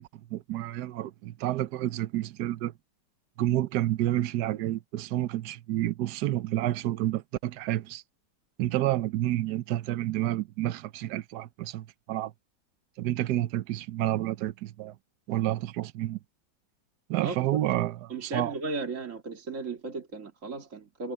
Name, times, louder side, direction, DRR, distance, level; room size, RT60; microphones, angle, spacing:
voice 1, 0.0-2.7 3.4-8.0 8.6-12.3 13.0-15.0 15.3-16.2 17.1-18.5, right 14 dB, 70° right, 1.2 m, -29 dB
voice 2, 17.2-17.7 18.1-21.1, right 3 dB, 45° right, 2.4 m, -36 dB
omnidirectional pair, 1.9 m